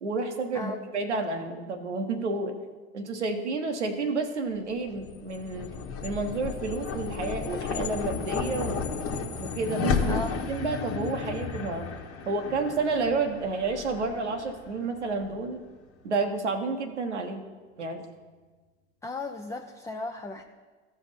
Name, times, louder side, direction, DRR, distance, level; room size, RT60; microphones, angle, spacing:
voice 1, 0.0-2.5 2.9-5.7 6.0-8.9 9.4-11.9 12.3-15.6 16.0-17.4 17.8-18.0, right 3 dB, 85° right, 5 dB, 1.1 m, -30 dB
sound 1, 4.8-15.4, left 5 dB, 40° left, 1.3 m, -33 dB
voice 2, 19.0-20.4, left 3 dB, 10° left, 4 dB, 0.5 m, -36 dB
15.0 x 5.1 x 4.2 m, 1.3 s
hypercardioid pair, 70°, 34 cm